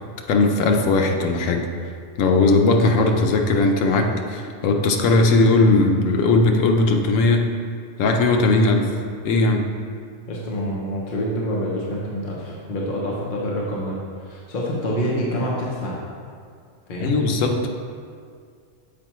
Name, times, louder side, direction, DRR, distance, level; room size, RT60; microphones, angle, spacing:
voice 1, 0.3-1.7 2.2-7.5 8.0-8.9 9.2-9.7 17.0-17.7, left 3 dB, 80° left, 3 dB, 1.0 m, -18 dB
voice 2, 10.3-14.0 14.2-16.0 16.9-17.2, equal, 45° left, -4 dB, 0.9 m, -26 dB
7.1 x 4.5 x 3.0 m, 2.2 s
omnidirectional pair, 1.3 m